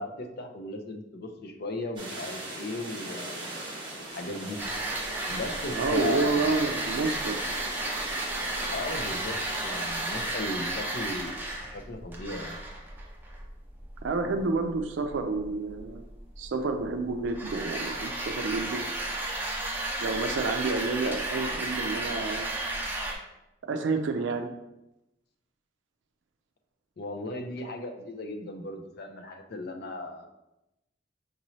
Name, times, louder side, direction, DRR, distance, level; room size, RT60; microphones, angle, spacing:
voice 1, 0.0-3.6 4.1-4.6 5.3-6.6 8.7-11.4 11.7-12.6 27.0-30.3, left 2 dB, 60° left, 4 dB, 0.5 m, -36 dB
sound 1, 2.0-10.4, right 2 dB, 25° right, 1.0 m, -39 dB
sound 2, 4.6-23.1, right 2 dB, 10° right, 0.6 m, -33 dB
voice 2, 5.7-7.4 14.0-16.0 16.4-18.9 20.0-22.5 23.6-24.5, right 3 dB, 80° right, 6 dB, 0.4 m, -29 dB
5.2 x 3.0 x 2.7 m, 0.91 s
head